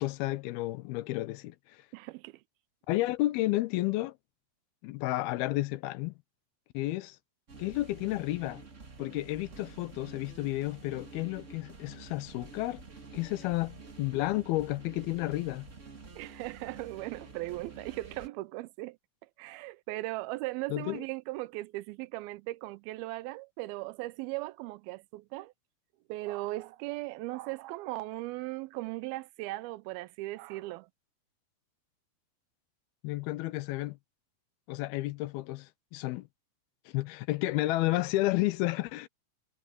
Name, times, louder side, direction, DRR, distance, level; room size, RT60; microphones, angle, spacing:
voice 1, 0.0-1.8 2.9-4.2 4.8-6.1 6.7-7.2 7.6-8.6 9.0-12.8 13.1-15.7 20.7-21.0 33.0-34.0 34.7-36.3 36.9-39.1, left 18 dB, 90° left, 2.6 m, -31 dB
voice 2, 1.9-2.4 16.2-25.5 26.1-30.9, right 19 dB, 85° right, 2.4 m, -38 dB
sound 1, 7.5-18.3, right 4 dB, 35° right, 1.3 m, -49 dB
omnidirectional pair, 4.4 m